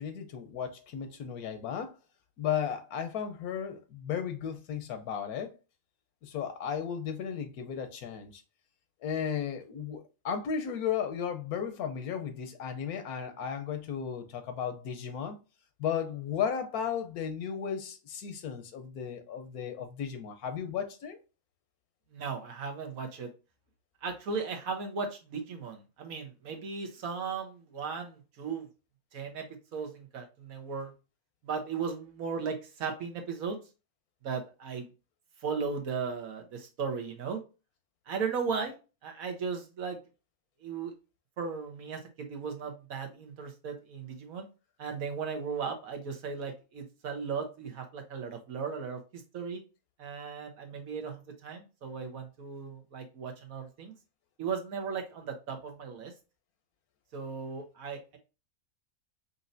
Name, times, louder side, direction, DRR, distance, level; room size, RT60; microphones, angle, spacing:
voice 1, 0.0-2.0 2.4-5.6 6.2-8.4 9.0-15.4 15.8-21.2, left 8 dB, 90° left, 1.3 m, -35 dB
voice 2, 22.1-23.3 24.0-28.7 29.1-29.5 29.7-30.9 31.4-33.6 34.2-34.9 35.4-37.4 38.1-38.7 39.0-40.0 40.6-40.9 41.4-44.5 44.8-49.6 50.0-53.9 54.4-56.1 57.1-58.2, right 5 dB, 70° right, 1.4 m, -36 dB
5.2 x 2.8 x 2.6 m
omnidirectional pair, 1.5 m